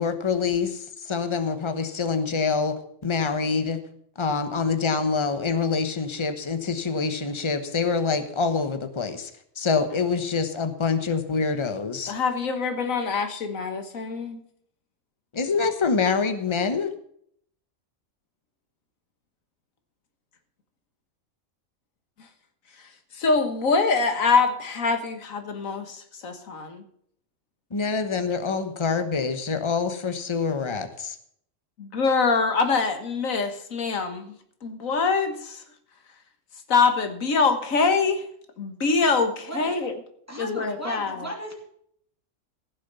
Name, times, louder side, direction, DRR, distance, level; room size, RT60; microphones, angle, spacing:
voice 1, 0.0-2.7 3.0-3.8 4.2-9.3 9.6-12.1 15.3-16.9 27.7-31.2, left 5 dB, 25° left, 9 dB, 1.0 m, -25 dB
voice 2, 12.1-14.4 22.2-22.3 22.7-26.8 31.8-35.6 36.7-38.3 38.6-39.9 40.4-41.3, left 4 dB, 80° left, 8 dB, 1.8 m, -24 dB
voice 3, 40.3-41.5, equal, 10° right, 0 dB, 2.7 m, -35 dB
15.5 x 6.9 x 6.9 m, 0.67 s
omnidirectional pair, 1.4 m